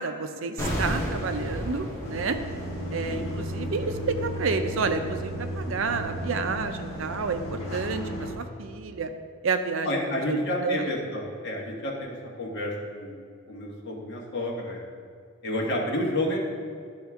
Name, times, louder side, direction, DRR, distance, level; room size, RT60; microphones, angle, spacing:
voice 1, 0.0-2.4 2.9-8.0 8.4-9.1 9.4-9.9 10.3-10.9, right 4 dB, 70° right, 8 dB, 0.5 m, -30 dB
sound 1, 0.6-5.6 5.8-6.0, equal, 15° left, 1.7 m, -34 dB
sound 2, 2.0-8.3, equal, 75° left, 1.7 m, -34 dB
voice 2, 9.8-14.8 15.4-16.4, left 1 dB, 55° left, -2 dB, 1.4 m, -30 dB
12.0 x 4.3 x 3.6 m, 2.2 s
head